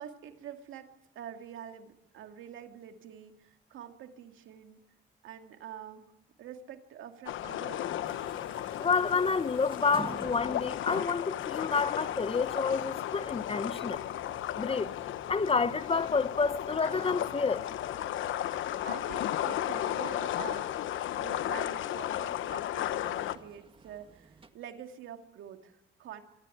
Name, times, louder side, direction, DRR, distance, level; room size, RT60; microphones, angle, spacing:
voice 1, 0.0-4.8 5.2-6.1 6.4-8.0 18.2-26.2, right 9 dB, 80° right, 2.3 m, -46 dB
sound 1, 7.3-23.4, left 12 dB, 80° left, 1.1 m, -34 dB
sound 2, 8.0-24.5, right 3 dB, 25° right, 1.8 m, -53 dB
voice 2, 8.8-14.0 14.6-14.9 15.3-17.7, left 4 dB, 30° left, 0.9 m, -29 dB
25.5 x 14.5 x 9.7 m
cardioid pair, 90°, 20 cm